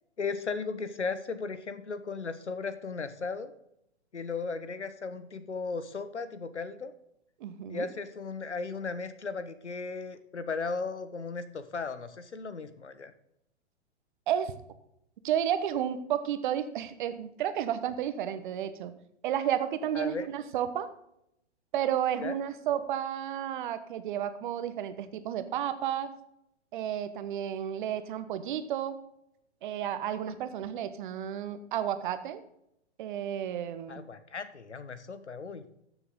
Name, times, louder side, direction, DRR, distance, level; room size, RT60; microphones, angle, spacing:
voice 1, 0.2-3.5 4.1-6.9 7.7-13.1 19.9-20.3 22.2-22.3 33.9-35.6, left 4 dB, 80° left, 12 dB, 1.2 m, -36 dB
voice 2, 7.4-7.9 14.3-14.5 15.2-18.9 19.2-20.9 21.7-26.1 26.7-29.0 29.6-32.4 33.0-34.0, right 10 dB, 45° right, 11 dB, 1.2 m, -32 dB
14.0 x 6.9 x 3.8 m, 0.78 s
figure-of-eight pair, 115°, 34 cm